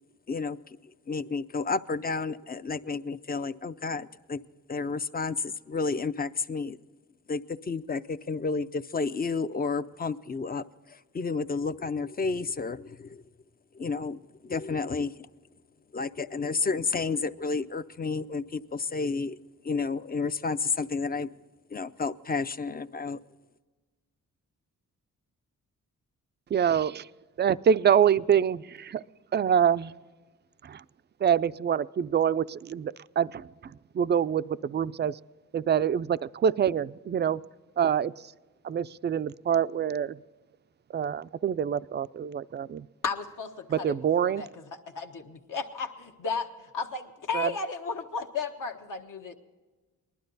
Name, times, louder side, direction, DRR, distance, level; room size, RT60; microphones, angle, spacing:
voice 1, 0.3-0.8 1.1-4.4 4.7-6.8 7.3-13.2 13.7-15.3 15.9-19.4 19.6-21.3 21.7-23.2, left 4 dB, 30° left, 13 dB, 0.5 m, -31 dB
voice 2, 26.5-27.1 27.4-29.0 29.3-29.9 30.6-30.8 31.2-35.2 35.5-37.4 37.8-38.1 38.6-40.2 40.9-42.9 43.7-44.5 47.3-47.5, right 8 dB, 35° right, 16 dB, 0.4 m, -26 dB
voice 3, 43.0-43.9 44.2-44.5 44.9-46.5 46.7-49.3, left 5 dB, 70° left, 4 dB, 1.3 m, -34 dB
19.5 x 12.0 x 4.0 m, 1.3 s
cardioid pair, 75°, 33 cm